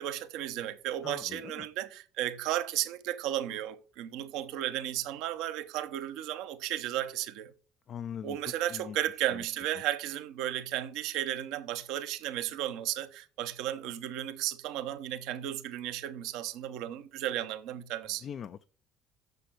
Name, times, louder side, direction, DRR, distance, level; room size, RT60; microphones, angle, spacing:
voice 1, 0.0-7.5 8.2-18.2, right 12 dB, 65° right, 0.9 m, -34 dB
voice 2, 1.0-1.7 7.9-8.4 8.7-9.0 9.3-9.4 18.2-18.7, left 8 dB, 50° left, 0.4 m, -41 dB
6.8 x 6.8 x 5.8 m
hypercardioid pair, 60°, 0 cm